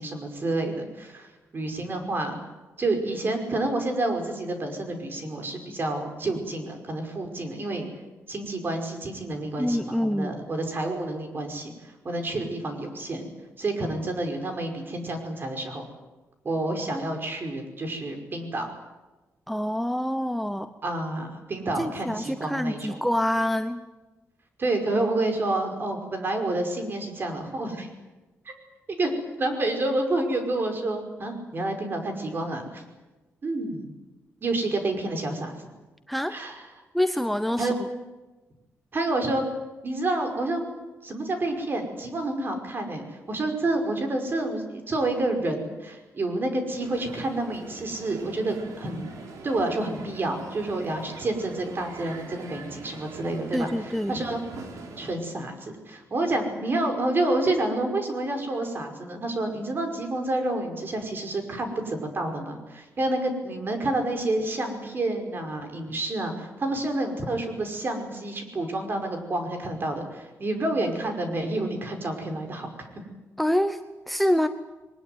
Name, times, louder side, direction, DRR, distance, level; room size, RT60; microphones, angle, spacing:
voice 1, 0.0-2.4 2.8-7.9 8.3-13.3 13.6-15.8 16.4-18.7 20.8-23.0 24.6-27.9 28.5-28.6 28.9-32.8 33.4-33.9 34.4-35.5 36.3-36.6 37.6-37.7 38.9-39.5 39.8-40.6 41.0-49.1 49.4-54.4 55.0-72.9, right 2 dB, 40° right, 5 dB, 5.3 m, -29 dB
voice 2, 9.6-10.3 19.5-20.7 21.8-23.8 36.1-36.4 36.9-37.7 53.5-54.2 73.4-74.5, left 1 dB, ahead, 9 dB, 0.9 m, -26 dB
Crowd, 46.8-55.1, right 4 dB, 90° right, 4.2 m, -43 dB
22.5 x 20.5 x 9.4 m, 1.2 s
cardioid pair, 110°, 5 cm